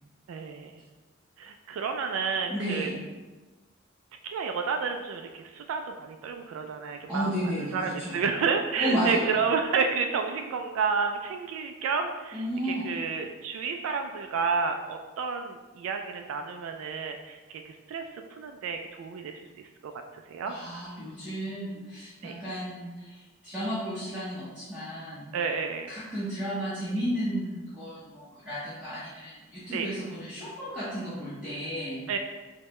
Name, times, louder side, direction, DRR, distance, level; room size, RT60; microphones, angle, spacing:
voice 1, 0.3-0.7 1.4-2.9 4.2-7.3 7.6-18.0 18.4-19.9 20.3-20.6 22.2-22.3 25.3-25.9 29.7-29.9 32.1-32.2, right 5 dB, 85° right, 5 dB, 0.3 m, -30 dB
voice 2, 2.5-3.0 7.1-8.2 8.8-9.3 12.3-12.9 20.5-25.3 25.9-32.0, equal, 5° right, -12 dB, 0.8 m, -33 dB
4.6 x 2.2 x 3.0 m, 1.2 s
head